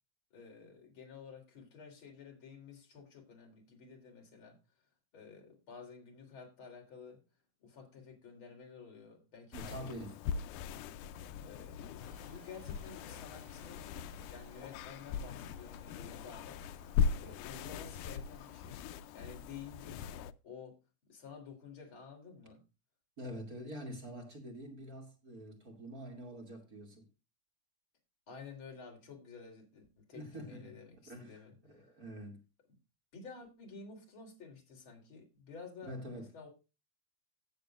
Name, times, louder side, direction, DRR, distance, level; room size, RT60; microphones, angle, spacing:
voice 1, 0.3-4.6 5.1-7.2 7.6-10.4 11.4-11.9 12.2-13.8 14.3-16.6 17.2-18.8 19.1-20.0 20.4-20.8 21.1-22.6 28.3-31.5 33.1-36.5, left 5 dB, 40° left, 4.1 m, -52 dB
sound 1, 9.5-20.3, left 7 dB, 80° left, 2.1 m, -39 dB
voice 2, 9.5-10.2 23.2-27.1 30.1-30.8 31.1-32.4 35.8-36.3, equal, 30° right, 2.6 m, -46 dB
sound 2, 12.0-18.7, left 4 dB, 60° left, 4.5 m, -61 dB
17.0 x 7.3 x 2.4 m
omnidirectional pair, 3.5 m